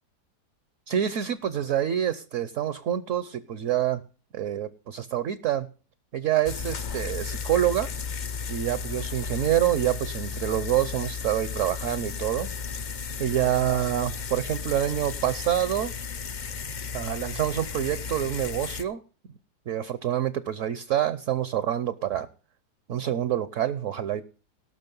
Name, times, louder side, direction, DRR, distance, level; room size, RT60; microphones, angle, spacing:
voice 1, 0.9-4.0 4.3-5.7 6.1-7.9 8.5-12.5 13.2-15.9 16.9-19.0 19.7-22.3 22.9-24.2, right 11 dB, 60° right, 14 dB, 0.9 m, -27 dB
sound 1, 6.5-18.8, left 6 dB, 55° left, 0.5 m, -34 dB
18.0 x 6.2 x 5.3 m, 0.37 s
omnidirectional pair, 1.8 m